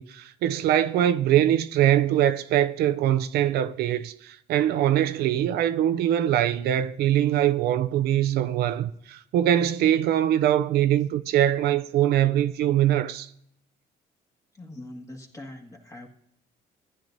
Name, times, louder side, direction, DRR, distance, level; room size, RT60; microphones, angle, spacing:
voice 1, 0.0-13.3, right 11 dB, 70° right, 0.4 m, -23 dB
voice 2, 14.5-16.1, left 1 dB, 20° left, 1.6 m, -42 dB
15.0 x 10.5 x 2.6 m
cardioid pair, 110°, 17 cm